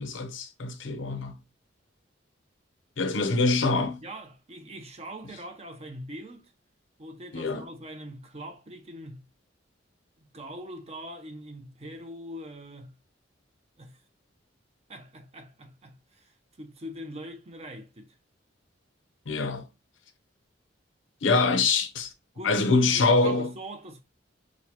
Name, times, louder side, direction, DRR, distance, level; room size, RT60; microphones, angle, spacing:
voice 1, 0.0-1.4 3.0-4.0 7.3-7.7 19.3-19.7 21.2-22.1 22.4-23.5, left 3 dB, 90° left, 0.7 m, -24 dB
voice 2, 4.0-6.5 7.0-9.3 10.2-13.0 13.8-14.0 14.9-18.1 22.3-24.0, right 1 dB, 35° right, 0.7 m, -42 dB
6.1 x 2.2 x 2.9 m
head